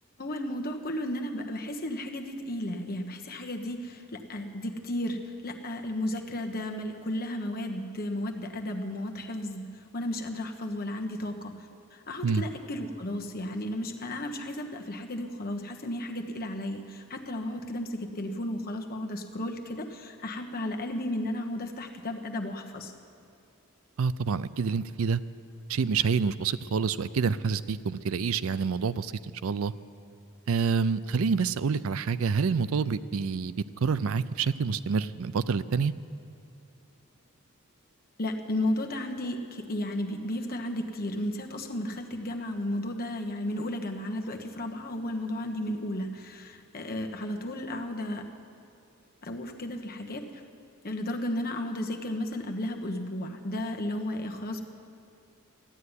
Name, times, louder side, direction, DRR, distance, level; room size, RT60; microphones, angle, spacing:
voice 1, 0.2-11.5 11.9-22.9 38.2-48.2 49.2-50.4 50.8-54.6, left 1 dB, 45° left, 4 dB, 1.2 m, -34 dB
voice 2, 24.0-25.2 25.7-29.1 29.4-29.7 30.5-33.5 33.8-35.9, right 5 dB, 70° right, 15 dB, 0.4 m, -27 dB
14.5 x 9.4 x 9.8 m, 2.5 s
head